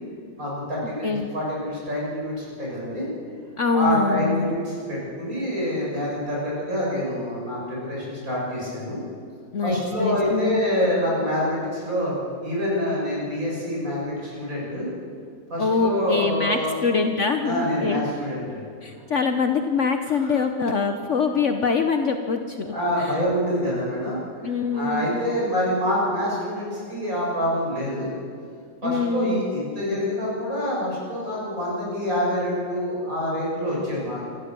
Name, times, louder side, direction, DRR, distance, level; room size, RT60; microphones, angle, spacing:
voice 1, 0.4-3.1 3.7-9.0 9.6-12.1 12.4-14.9 15.5-16.8 17.4-18.6 20.1-20.4 22.6-28.1 28.8-34.2, equal, 50° right, -5 dB, 7.2 m, -26 dB
voice 2, 3.6-4.5 9.5-10.6 15.6-18.0 18.8-22.7 23.0-23.2 24.4-25.2 28.8-29.4, left 4 dB, 50° left, 6 dB, 1.1 m, -24 dB
26.0 x 14.5 x 6.9 m, 2.3 s
omnidirectional pair, 1.8 m